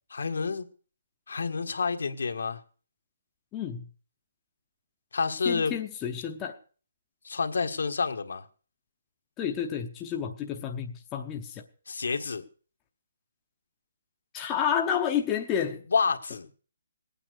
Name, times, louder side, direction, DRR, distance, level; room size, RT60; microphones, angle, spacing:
voice 1, 0.1-0.7 1.3-2.6 5.1-5.7 7.2-8.4 11.9-12.4 15.9-16.5, left 5 dB, 70° left, 1.7 m, -28 dB
voice 2, 3.5-3.9 5.4-6.6 9.4-11.6 14.3-15.8, left 8 dB, 10° left, 0.8 m, -30 dB
19.5 x 8.9 x 6.5 m
hypercardioid pair, 175°, 0 cm